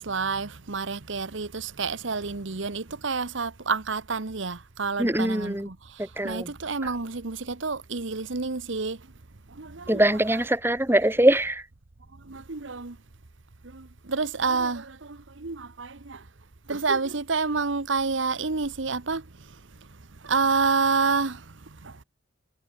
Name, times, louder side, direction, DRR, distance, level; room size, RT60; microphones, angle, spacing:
voice 1, 0.0-9.0 9.5-10.0 10.9-11.0 12.2-13.0 13.6-16.2 16.7-19.2 20.2-21.5 21.8-22.0, right 4 dB, 70° right, 1.2 m, -29 dB
voice 2, 5.0-5.7 6.0-6.5 9.9-11.6, right 1 dB, 10° right, 1.6 m, -22 dB
head